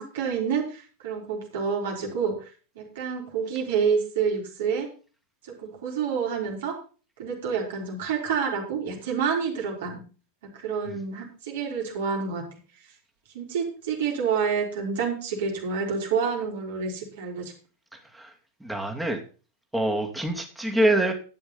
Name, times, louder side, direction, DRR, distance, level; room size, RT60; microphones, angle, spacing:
voice 1, 0.0-2.5 2.8-4.9 5.5-6.8 7.2-10.0 10.4-12.5 13.3-17.5, right 6 dB, 55° right, 0 dB, 3.7 m, -28 dB
voice 2, 18.6-19.2 19.7-21.1, right 1 dB, 5° right, 2 dB, 2.5 m, -25 dB
12.0 x 9.7 x 4.0 m, 0.36 s
figure-of-eight pair, 90°, 0 cm